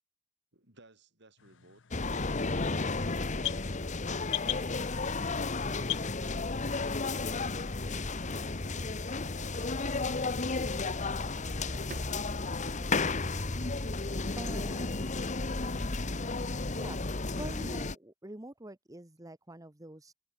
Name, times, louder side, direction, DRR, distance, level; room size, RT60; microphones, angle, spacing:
voice 1, 0.5-7.0 7.8-13.7 14.2-16.2, right 2 dB, 60° right, 8.0 m, -60 dB
sound 1, 1.4-6.9, left 16 dB, 70° left, 0.8 m, -41 dB
sound 2, 1.9-17.9, left 3 dB, 40° left, 1.2 m, -33 dB
sound 3, 5.6-9.9 10.7-10.9 11.2-13.7, right 2 dB, 40° right, 3.3 m, -55 dB
voice 2, 14.4-14.9 16.7-17.0 17.4-20.1, right 1 dB, 15° right, 1.4 m, -45 dB
head